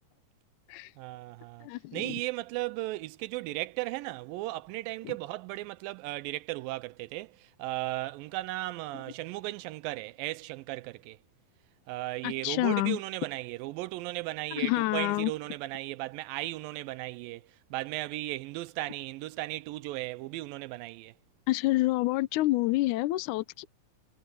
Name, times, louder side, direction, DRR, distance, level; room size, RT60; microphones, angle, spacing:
voice 1, 1.0-11.2 11.9-17.4 17.7-21.1, right 18 dB, 85° right, 2.3 m, -36 dB
voice 2, 1.6-2.0 5.0-5.1 12.2-13.0 14.6-15.3 21.5-23.6, left 18 dB, 80° left, 1.9 m, -28 dB
omnidirectional pair, 4.0 m